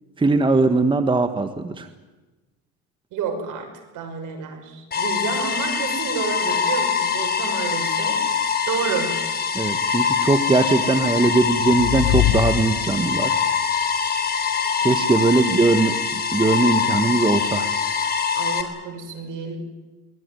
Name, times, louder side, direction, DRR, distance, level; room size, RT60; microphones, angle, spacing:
voice 1, 0.2-1.9 9.5-13.3 14.8-17.7, right 3 dB, 15° right, 8 dB, 1.4 m, -20 dB
voice 2, 3.1-3.7 3.9-8.2 8.7-9.3 15.4-15.5 18.3-19.6, right 5 dB, 60° right, 5 dB, 6.2 m, -29 dB
sound 1, 4.9-18.6, left 6 dB, 25° left, 3.7 m, -24 dB
sound 2, 11.1-13.4, left 13 dB, 70° left, 1.3 m, -24 dB
23.5 x 19.5 x 9.7 m, 1.2 s
supercardioid pair, 110°, 36 cm